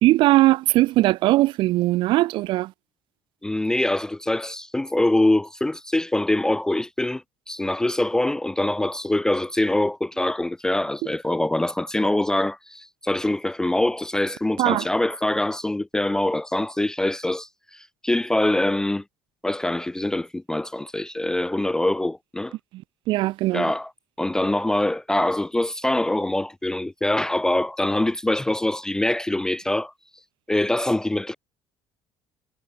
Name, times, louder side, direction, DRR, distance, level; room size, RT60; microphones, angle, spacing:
voice 1, 0.0-2.7 14.6-14.8 23.1-23.7, right 17 dB, 65° right, 1.3 m, -19 dB
voice 2, 3.4-7.2 7.5-19.0 19.4-22.5 23.5-23.9 24.2-29.9 30.5-31.3, left 1 dB, 5° left, 0.4 m, -24 dB
cardioid pair, 125°, 9 cm